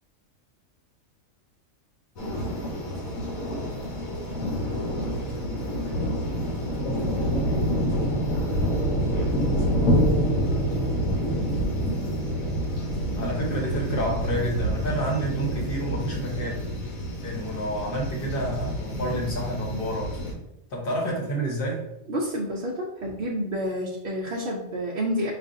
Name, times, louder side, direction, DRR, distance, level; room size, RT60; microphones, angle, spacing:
sound 1, 2.2-20.3, equal, 90° left, 1.3 m, -27 dB
voice 1, 13.2-16.6 17.2-20.1 20.7-21.8, right 1 dB, 45° left, -2 dB, 1.0 m, -29 dB
voice 2, 22.1-25.3, equal, 60° right, -5 dB, 0.6 m, -29 dB
5.0 x 2.4 x 2.5 m, 0.89 s
omnidirectional pair, 1.4 m